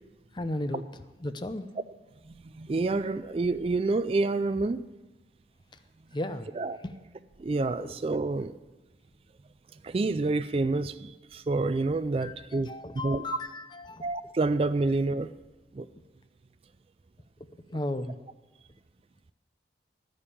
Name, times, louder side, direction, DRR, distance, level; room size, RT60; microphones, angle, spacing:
voice 1, 0.3-0.8 1.2-1.7 6.1-6.5 7.8-7.9 12.2-14.0 17.7-18.2, left 1 dB, 25° left, 10 dB, 0.6 m, -34 dB
voice 2, 2.3-4.8 6.5-6.8 7.4-8.5 9.8-13.2 14.0-15.3 15.7-15.9, right 3 dB, 30° right, 12 dB, 0.3 m, -28 dB
16.0 x 5.4 x 8.6 m, 1.1 s
head